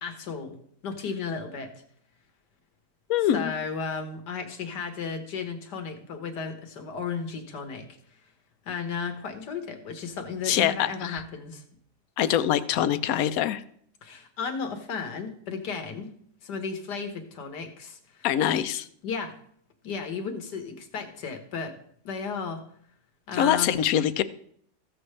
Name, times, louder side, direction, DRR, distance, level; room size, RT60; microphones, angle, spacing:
voice 1, 0.0-0.6 0.8-1.7 3.3-7.9 8.7-11.6 14.0-16.1 16.4-18.3 19.0-19.3 19.8-21.7 22.0-22.6 23.3-23.8, left 5 dB, 90° left, 6 dB, 1.9 m, -34 dB
voice 2, 3.1-3.5 10.5-11.2 12.2-13.6 18.2-18.9 23.3-24.2, left 10 dB, 70° left, 14 dB, 1.0 m, -24 dB
14.5 x 7.8 x 3.2 m, 0.63 s
omnidirectional pair, 1.7 m